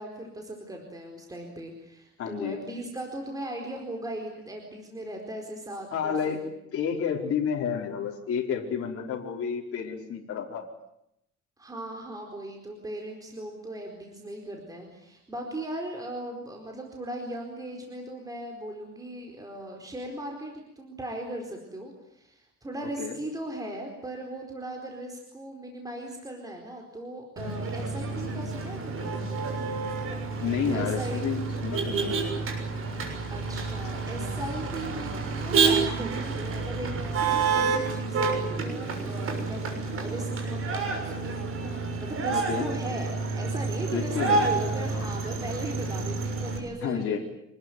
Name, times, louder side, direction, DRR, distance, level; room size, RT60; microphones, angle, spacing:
voice 1, 0.0-6.5 11.6-29.2 30.7-31.2 33.3-47.2, right 1 dB, 10° right, 2 dB, 4.5 m, -38 dB
voice 2, 2.2-2.6 5.9-6.4 6.7-10.7 23.0-23.1 30.4-32.1 42.3-42.7 43.9-45.1 46.8-47.2, left 7 dB, 50° left, -1 dB, 4.9 m, -30 dB
Motor vehicle (road), 27.4-46.6, right 4 dB, 45° right, 6.7 m, -29 dB
27.0 x 20.5 x 9.4 m, 0.81 s
cardioid pair, 155°, 30 cm